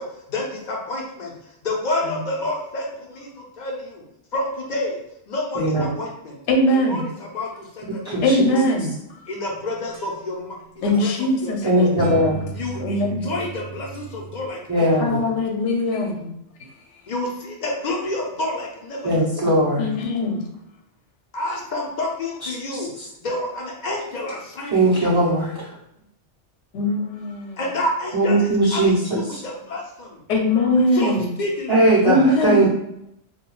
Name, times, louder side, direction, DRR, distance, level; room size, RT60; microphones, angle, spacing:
voice 1, 0.0-4.0 4.3-4.9 5.3-6.4 6.7-8.6 9.3-12.0 12.5-14.8 15.2-15.4 17.1-19.1 19.4-19.5 21.3-22.9 23.2-25.2 27.6-30.2 30.9-31.1 31.4-31.9, left 1 dB, 55° left, -1 dB, 0.5 m, -29 dB
voice 2, 6.5-7.0 8.2-9.2 10.8-12.1 12.8-13.3 15.0-16.3 19.8-20.4 26.7-27.6 30.3-31.3 32.0-32.7, left 1 dB, 75° left, 1 dB, 0.9 m, -21 dB
voice 3, 8.0-8.5 11.6-12.4 14.7-15.2 19.0-19.9 22.7-23.1 24.7-25.7 28.1-29.4 31.7-32.7, right 1 dB, 30° right, -7 dB, 0.5 m, -19 dB
sound 1, 9.4-10.6 10.9-11.1 11.9-14.5, right 3 dB, 65° right, 0.8 m, -36 dB
2.3 x 2.3 x 3.0 m, 0.79 s
omnidirectional pair, 1.2 m